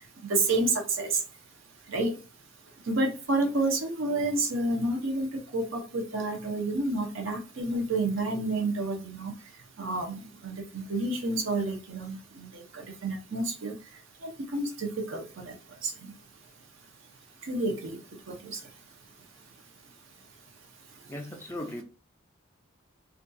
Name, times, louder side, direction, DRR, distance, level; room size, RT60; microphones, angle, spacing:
voice 1, 0.3-1.1 1.9-2.2 2.9-5.3 5.5-9.3 9.8-13.7 14.2-15.5 15.8-16.1 17.5-18.0 18.3-18.6, right 2 dB, 65° right, 2 dB, 0.6 m, -29 dB
voice 2, 21.1-21.8, left 1 dB, 10° left, 3 dB, 0.3 m, -38 dB
2.5 x 2.3 x 2.5 m, 0.33 s
head